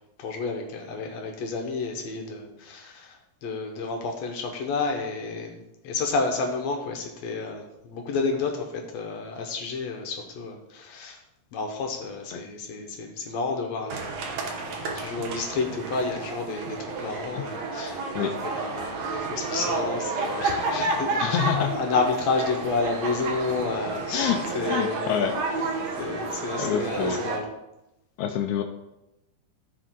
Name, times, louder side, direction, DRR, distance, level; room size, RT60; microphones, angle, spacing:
voice 1, 0.2-11.2 11.5-25.3 26.0-27.4, left 4 dB, 65° left, 2 dB, 1.9 m, -30 dB
sound 1, 13.9-27.4, right 3 dB, 65° right, 2.0 m, -31 dB
voice 2, 21.2-21.7 24.1-25.4 26.6-27.2 28.2-28.6, left 8 dB, 80° left, 6 dB, 1.7 m, -27 dB
14.5 x 5.0 x 3.7 m, 0.92 s
omnidirectional pair, 4.0 m